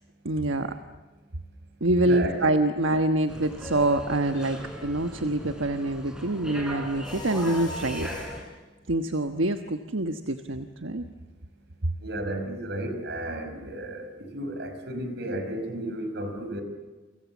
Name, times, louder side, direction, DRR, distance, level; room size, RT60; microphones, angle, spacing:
voice 1, 0.2-0.8 1.8-8.1 8.9-11.0, right 1 dB, 80° right, 7 dB, 1.3 m, -26 dB
voice 2, 2.0-2.4 12.0-16.6, right 1 dB, 55° right, 7 dB, 5.2 m, -33 dB
sound 1, 3.3-8.4, equal, 5° right, 5.0 m, -38 dB
Mechanisms, 7.0-8.5, left 2 dB, 20° left, 6.9 m, -41 dB
29.5 x 25.0 x 7.3 m, 1.2 s
head